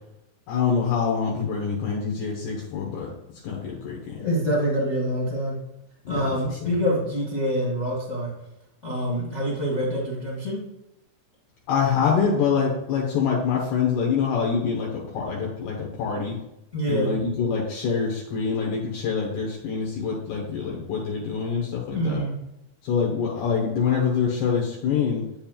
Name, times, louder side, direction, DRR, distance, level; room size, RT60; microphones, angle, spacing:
voice 1, 0.5-3.1 3.4-4.2 6.1-6.7 11.7-16.4 16.9-22.2 22.8-25.2, left 6 dB, 75° left, -2 dB, 2.9 m, -25 dB
voice 2, 4.1-5.6 6.1-8.3 8.8-10.6 16.7-17.1 21.9-22.3, equal, 50° left, -5 dB, 0.8 m, -26 dB
8.7 x 7.3 x 2.4 m, 0.84 s
omnidirectional pair, 4.9 m